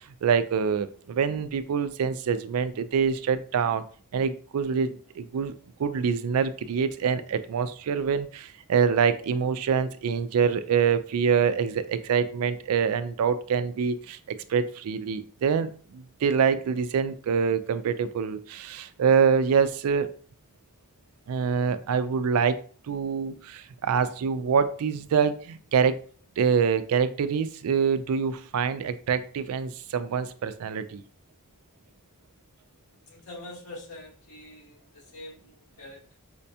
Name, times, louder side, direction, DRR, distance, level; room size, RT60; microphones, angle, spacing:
voice 1, 0.2-3.8 4.1-14.2 14.5-20.1 21.3-26.0 26.4-31.0, right 6 dB, 80° right, 12 dB, 0.4 m, -25 dB
voice 2, 33.1-36.2, left 2 dB, 85° left, -5 dB, 1.7 m, -45 dB
5.0 x 2.2 x 2.7 m, 0.44 s
head